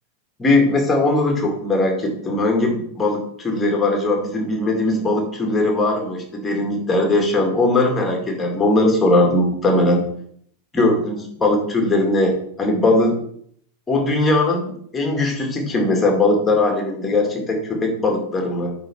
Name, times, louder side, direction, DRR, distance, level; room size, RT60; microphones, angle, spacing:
voice 1, 0.4-10.0 10.7-13.2 13.9-18.7, left 2 dB, 15° left, 2 dB, 2.1 m, -19 dB
9.0 x 3.9 x 4.6 m, 0.64 s
figure-of-eight pair, 90°, 0 cm